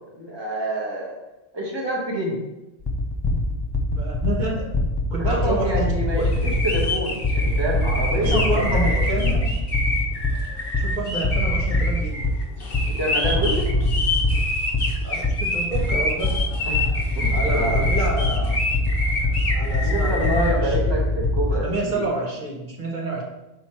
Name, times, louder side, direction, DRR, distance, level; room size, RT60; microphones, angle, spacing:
voice 1, 0.1-1.2 1.5-2.4 5.2-9.2 12.9-13.7 16.6-17.9 19.8-22.1, equal, 20° right, -3 dB, 1.4 m, -27 dB
sound 1, 2.8-10.3 10.7-12.3 12.7-21.6, left 2 dB, 25° left, 0.6 m, -23 dB
voice 2, 3.9-4.7 5.1-6.3 8.2-9.6 10.8-12.2 15.0-16.4 17.3-18.6 19.5-20.9 21.5-23.2, right 2 dB, 40° right, -1 dB, 1.4 m, -28 dB
sound 2, 6.3-20.5, left 2 dB, 55° left, 1.2 m, -28 dB
6.0 x 3.9 x 4.3 m, 0.99 s
omnidirectional pair, 1.2 m